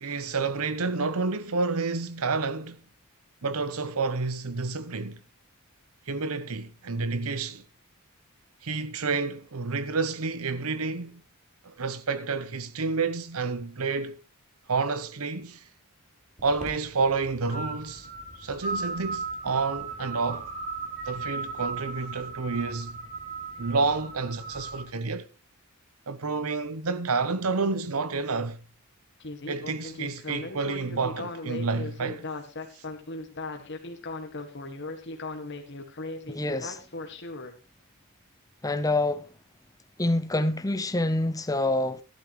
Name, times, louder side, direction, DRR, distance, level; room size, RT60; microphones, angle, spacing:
voice 1, 0.0-2.8 3.4-5.2 6.1-7.6 8.6-11.2 11.6-14.2 14.7-15.7 16.4-18.1 18.4-20.5 21.0-23.0 23.6-25.3 26.1-28.6 29.5-32.3 32.8-32.9, right 4 dB, 75° right, 0.9 m, -29 dB
sound 1, 16.4-24.8, right 4 dB, 35° right, 3.5 m, -37 dB
Speech synthesizer, 29.2-37.5, left 2 dB, 55° left, 1.8 m, -37 dB
voice 2, 36.3-36.8 38.6-39.2 40.0-42.0, left 2 dB, 15° left, 0.8 m, -26 dB
14.5 x 11.5 x 3.1 m
head